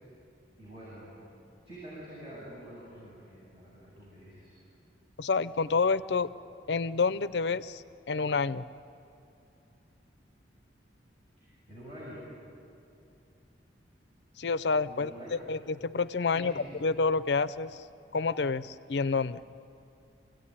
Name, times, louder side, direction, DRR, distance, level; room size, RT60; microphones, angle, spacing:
voice 1, 0.6-1.2 1.6-4.6 11.4-12.2 14.9-15.4 16.3-16.8, equal, 35° right, -8 dB, 7.7 m, -47 dB
voice 2, 5.2-6.3 6.7-8.7 14.4-15.1 15.5-16.5 16.8-17.7 18.1-19.4, left 4 dB, 70° left, 15 dB, 0.6 m, -28 dB
26.0 x 17.0 x 10.0 m, 2.6 s
head